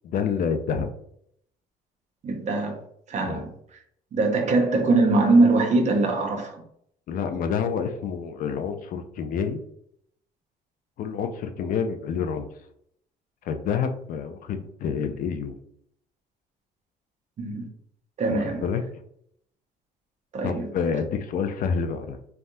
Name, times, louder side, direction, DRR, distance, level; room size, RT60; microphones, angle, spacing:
voice 1, 0.0-0.9 3.2-3.5 7.1-9.6 11.0-12.5 13.5-15.5 18.6-18.8 20.4-22.2, left 6 dB, 55° left, 0.4 m, -28 dB
voice 2, 2.2-2.8 3.1-3.5 4.1-6.6 17.4-17.7 18.2-18.6 20.3-20.7, right 3 dB, 45° right, 0.7 m, -22 dB
3.4 x 2.2 x 2.6 m
cardioid pair, 110°, 17 cm